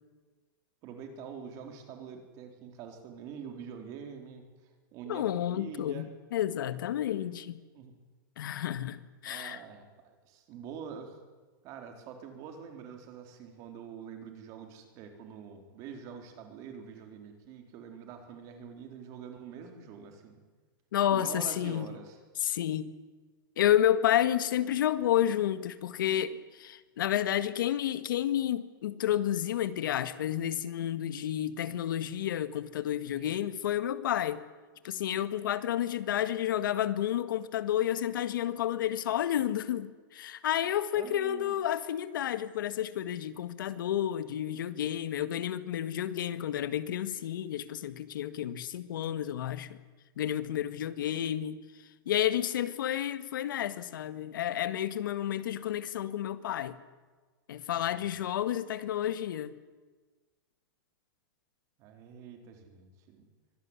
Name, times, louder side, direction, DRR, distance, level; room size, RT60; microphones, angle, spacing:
voice 1, 0.8-6.1 7.7-7.9 9.2-11.2 11.6-20.4 21.1-22.2 33.1-33.4 40.9-41.6 57.7-57.8 61.8-63.3, right 7 dB, 30° right, 5 dB, 4.0 m, -45 dB
voice 2, 5.1-7.6 8.4-9.6 20.9-21.9 22.4-22.9 23.6-34.4 34.8-49.8 50.2-51.6 52.0-56.8 57.5-59.5, left 11 dB, 70° left, 13 dB, 1.8 m, -30 dB
25.0 x 18.5 x 9.8 m, 1.4 s
supercardioid pair, 170°, 11 cm